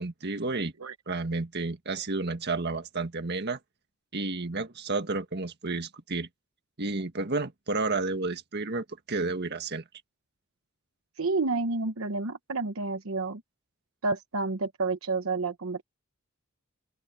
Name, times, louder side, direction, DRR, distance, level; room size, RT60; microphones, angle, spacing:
voice 1, 0.0-0.7 1.1-3.6 4.1-6.3 6.8-9.8, right 3 dB, 50° right, 1.8 m, -31 dB
voice 2, 11.2-13.4 14.0-15.8, right 3 dB, 75° right, 1.0 m, -29 dB
open air
head